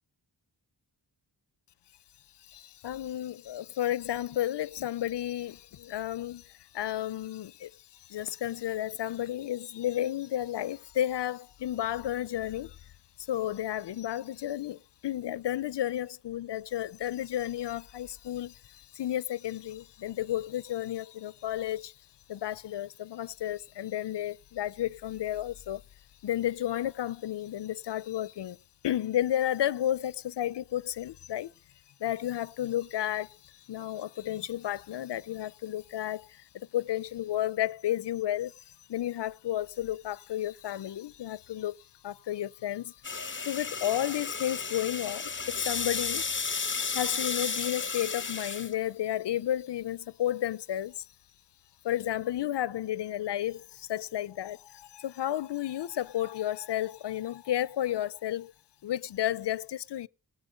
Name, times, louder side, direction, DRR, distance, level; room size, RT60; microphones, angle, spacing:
voice 1, 2.4-12.8 13.2-21.9 22.3-25.8 26.2-28.6 28.8-31.5 32.0-38.5 38.9-43.0 43.5-46.3 46.9-51.1 51.8-58.5 58.8-60.1, left 12 dB, 70° left, 0.5 m, -32 dB
sound 1, 43.0-48.7, left 5 dB, 25° left, 0.6 m, -33 dB
19.0 x 7.7 x 5.2 m
cardioid pair, 60°, 43 cm